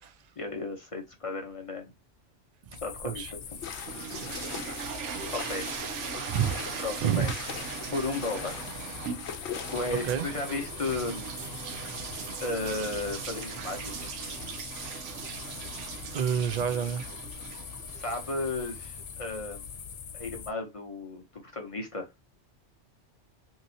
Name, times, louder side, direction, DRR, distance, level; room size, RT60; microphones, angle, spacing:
voice 1, 0.4-1.8 2.8-3.4 5.3-5.7 6.8-7.3 7.9-8.7 9.7-11.3 12.4-14.1 17.9-19.7 20.1-22.1, left 2 dB, 35° left, 0.6 m, -34 dB
sound 1, 2.7-20.5, left 7 dB, 90° left, 0.3 m, -43 dB
voice 2, 2.7-3.3 4.4-4.5 6.3-6.7 7.0-7.3 10.0-10.2 16.1-17.1, right 8 dB, 60° right, 0.4 m, -29 dB
sound 2, 3.4-19.4, right 7 dB, 90° right, 0.9 m, -40 dB
sound 3, 3.6-10.0, left 6 dB, 70° left, 1.0 m, -41 dB
2.9 x 2.7 x 2.6 m
omnidirectional pair, 1.2 m